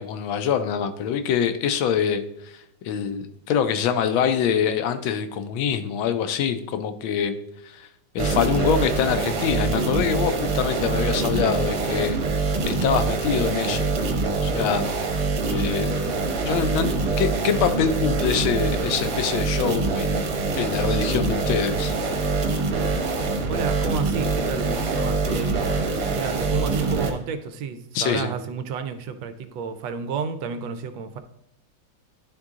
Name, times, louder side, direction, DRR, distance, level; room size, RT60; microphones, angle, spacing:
voice 1, 0.0-7.4 7.6-7.9 8.1-12.2 12.6-13.9 14.4-15.9 16.4-16.9 17.2-20.3 20.6-21.9 27.9-28.3, left 8 dB, 80° left, 9 dB, 1.4 m, -25 dB
sound 1, 8.2-27.1, right 3 dB, 55° right, 1.3 m, -24 dB
voice 2, 23.5-25.8 26.1-31.2, right 6 dB, 75° right, 10 dB, 1.2 m, -31 dB
11.0 x 3.8 x 3.6 m, 0.80 s
omnidirectional pair, 2.2 m